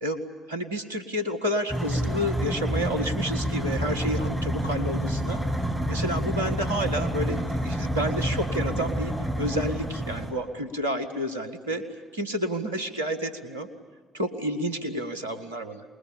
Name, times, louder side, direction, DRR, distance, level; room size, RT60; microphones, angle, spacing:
voice 1, 0.5-5.4 5.9-11.9 12.1-13.7 14.1-15.8, equal, 85° right, 7 dB, 1.7 m, -30 dB
sound 1, 1.7-10.3, equal, 5° left, 8.0 m, -28 dB
26.5 x 21.0 x 8.7 m, 1.5 s
figure-of-eight pair, 50°, 0 cm